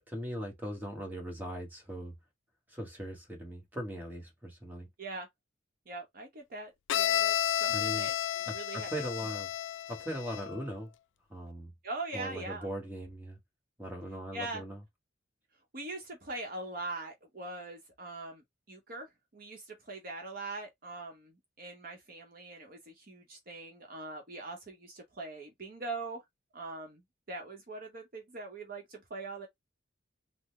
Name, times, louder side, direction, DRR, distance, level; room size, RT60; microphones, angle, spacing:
voice 1, 0.0-2.1 2.7-4.9 7.7-8.1 8.5-9.5 9.9-10.9 11.3-11.7 12.1-13.4 13.8-14.8, equal, 10° right, 1.2 m, -39 dB
voice 2, 5.9-8.9 11.8-12.7 14.3-14.6 15.7-19.1 19.3-26.2 26.5-27.0 27.3-29.5, right 2 dB, 45° right, 0.8 m, -42 dB
Bowed string instrument, 6.9-10.6, left 11 dB, 75° left, 0.3 m, -32 dB
3.8 x 2.1 x 3.1 m
head